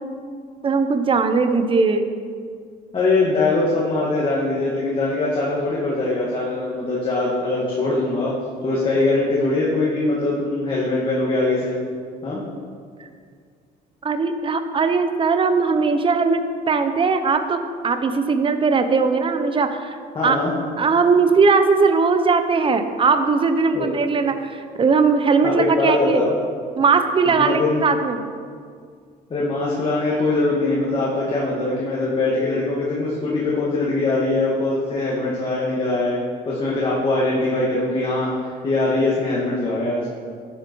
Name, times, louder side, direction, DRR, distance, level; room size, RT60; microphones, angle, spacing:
voice 1, 0.6-2.1 14.0-20.0 20.2-20.4 20.8-26.2 26.8-28.2, right 4 dB, 30° right, 8 dB, 0.9 m, -19 dB
voice 2, 2.9-8.3 8.6-11.8 12.2-12.4 20.2-20.5 23.7-23.9 25.6-26.3 27.4-27.8 29.3-40.1, left 2 dB, 30° left, -6 dB, 2.2 m, -22 dB
12.0 x 8.3 x 4.7 m, 2.1 s
cardioid pair, 110°, 17 cm